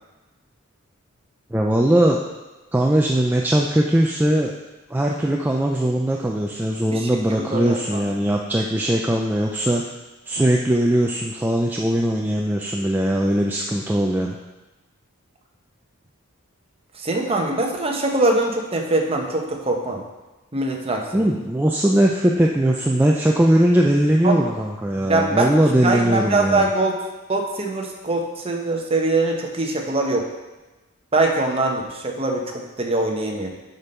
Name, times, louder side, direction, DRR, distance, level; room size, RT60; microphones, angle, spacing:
voice 1, 1.5-2.2 2.7-4.5 4.9-9.8 10.3-14.3 21.1-26.7, right 1 dB, 10° right, -1 dB, 0.4 m, -20 dB
voice 2, 6.9-8.0 17.0-20.0 20.5-21.2 24.2-24.5 25.1-27.0 27.3-30.3 31.1-33.5, right 2 dB, 25° right, 2 dB, 0.9 m, -23 dB
8.1 x 5.3 x 4.3 m, 1.1 s
head